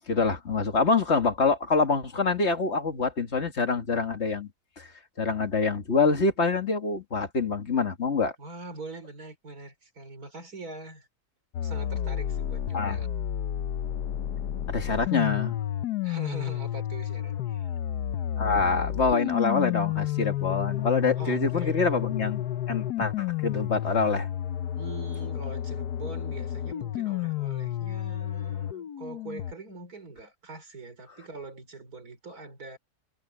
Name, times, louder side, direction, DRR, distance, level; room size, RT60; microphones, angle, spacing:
voice 1, 0.1-4.5 4.8-4.9 5.2-8.3 12.7-13.1 14.7-15.6 18.4-24.3, left 4 dB, 45° left, 2.0 m, -26 dB
voice 2, 8.4-11.1 11.6-13.1 16.0-17.8 21.2-22.0 24.8-32.8, right 3 dB, 65° right, 5.0 m, -43 dB
sound 1, 11.5-29.5, left 11 dB, 80° left, 1.4 m, -31 dB
omnidirectional pair, 1.7 m